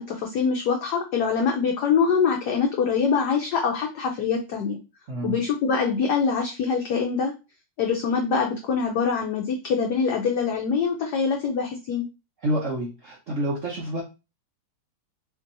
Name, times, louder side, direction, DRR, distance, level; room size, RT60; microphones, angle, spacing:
voice 1, 0.0-4.8 5.2-7.3 7.8-12.0, left 5 dB, 75° left, 2 dB, 0.9 m, -24 dB
voice 2, 5.1-5.4 12.4-14.0, right 1 dB, 80° right, -3 dB, 0.6 m, -28 dB
4.3 x 2.8 x 2.6 m, 0.28 s
omnidirectional pair, 2.4 m